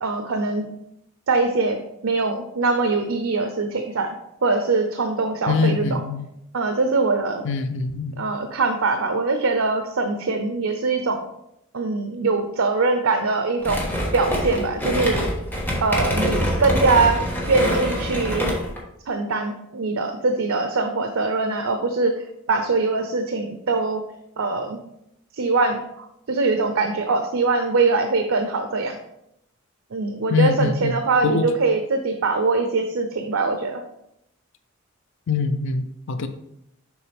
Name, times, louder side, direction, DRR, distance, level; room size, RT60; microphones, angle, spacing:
voice 1, 0.0-0.7 1.3-4.1 4.4-6.0 6.5-7.4 8.2-11.3 11.7-13.8 14.1-15.2 15.8-18.6 19.1-24.0 24.4-24.8 25.3-29.0 29.9-33.8, right 3 dB, 85° right, 6 dB, 0.6 m, -22 dB
voice 2, 5.5-6.2 7.4-8.2 30.3-30.9 31.2-31.4 35.3-36.3, left 4 dB, 65° left, 9 dB, 0.5 m, -23 dB
sound 1, 13.6-18.8, equal, 10° left, 1.3 m, -25 dB
7.1 x 4.7 x 3.4 m, 0.79 s
head